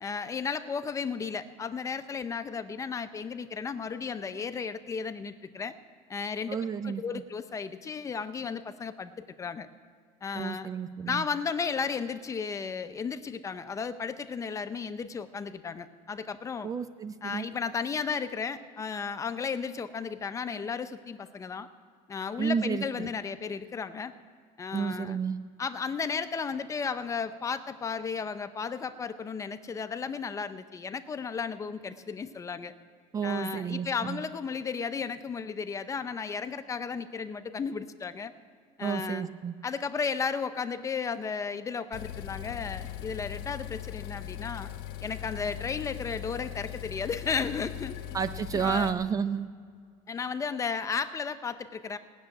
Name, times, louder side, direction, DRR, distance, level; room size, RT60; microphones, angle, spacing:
voice 1, 0.0-5.7 6.1-6.6 6.8-9.7 10.2-10.7 11.1-16.7 17.2-21.7 22.1-24.1 24.6-25.2 25.6-32.7 33.2-38.3 38.8-39.3 39.6-44.7 45.0-47.9 48.5-48.9 50.1-52.0, left 5 dB, 20° left, 10 dB, 0.6 m, -34 dB
voice 2, 6.5-7.2 10.3-11.3 16.6-17.5 22.4-23.1 24.7-25.4 33.1-34.2 38.8-39.5 48.1-49.5, right 6 dB, 20° right, 12 dB, 0.5 m, -31 dB
sound 1, 41.9-48.9, left 12 dB, 70° left, 1.1 m, -39 dB
18.0 x 7.2 x 9.7 m, 2.1 s
cardioid pair, 155°, 16 cm